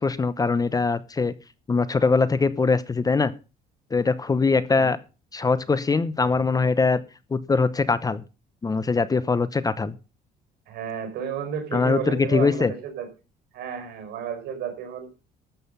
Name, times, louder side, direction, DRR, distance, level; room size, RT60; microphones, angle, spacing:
voice 1, 0.0-1.3 1.7-3.3 3.9-5.0 5.3-7.0 7.3-8.2 8.6-10.0 11.7-12.7, left 4 dB, 20° left, 16 dB, 0.8 m, -22 dB
voice 2, 10.7-13.1 13.5-15.1, right 8 dB, 75° right, 7 dB, 4.7 m, -32 dB
13.0 x 7.9 x 5.5 m, 0.31 s
cardioid pair, 110°, 17 cm